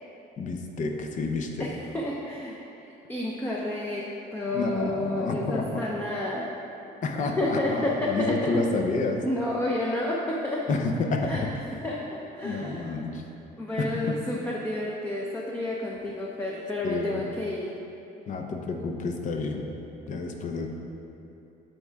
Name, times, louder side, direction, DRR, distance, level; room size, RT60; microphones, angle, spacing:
voice 1, 0.4-1.7 4.5-5.8 7.0-9.2 10.7-11.5 12.4-13.2 13.8-14.2 16.8-17.2 18.3-19.6 20.1-20.7, left 3 dB, 50° left, 3 dB, 0.7 m, -29 dB
voice 2, 1.6-6.5 7.4-8.7 9.2-10.6 11.2-11.5 11.8-12.9 13.6-17.7, left 1 dB, 10° left, -3 dB, 0.6 m, -30 dB
7.7 x 3.6 x 4.6 m, 2.9 s
cardioid pair, 110°, 17 cm